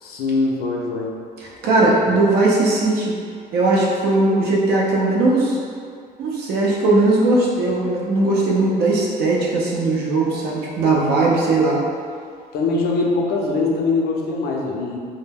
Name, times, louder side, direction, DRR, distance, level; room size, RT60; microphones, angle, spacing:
voice 1, 0.0-1.1 2.1-2.2 12.5-15.0, left 3 dB, 70° left, -2 dB, 0.5 m, -22 dB
voice 2, 1.6-3.1 3.5-5.6 6.2-11.8, right 2 dB, 70° right, -4 dB, 0.5 m, -18 dB
2.2 x 2.1 x 3.3 m, 2.1 s
cardioid pair, 110°, 17 cm